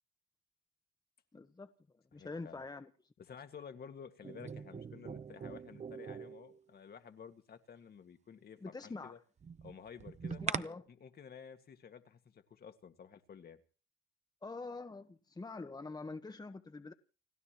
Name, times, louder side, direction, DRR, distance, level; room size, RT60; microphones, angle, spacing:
voice 1, 1.3-1.7 2.1-2.9 8.6-9.2 10.4-10.8 14.4-16.9, left 3 dB, 20° left, 1.3 m, -45 dB
voice 2, 2.1-2.6 3.2-9.2 9.6-10.4 10.9-13.6, left 7 dB, 50° left, 2.0 m, -52 dB
sound 1, 4.2-6.6 9.4-10.6, right 6 dB, 35° right, 0.9 m, -42 dB
30.0 x 12.0 x 3.1 m
cardioid pair, 90°, 20 cm